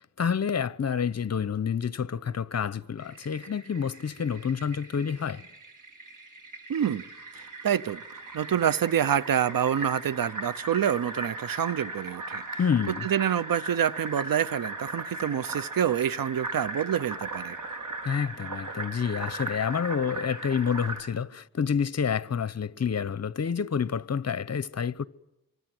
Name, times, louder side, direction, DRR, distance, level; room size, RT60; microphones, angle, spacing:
voice 1, 0.2-5.5 12.6-13.1 18.0-25.0, left 7 dB, 50° left, 0.9 m, -28 dB
Fill (with liquid), 3.0-21.0, right 2 dB, 65° right, 5.2 m, -38 dB
voice 2, 6.7-7.0 7.3-8.0 8.3-12.4 13.0-17.6, right 9 dB, 85° right, 0.9 m, -27 dB
26.5 x 23.5 x 7.8 m
cardioid pair, 60°, 34 cm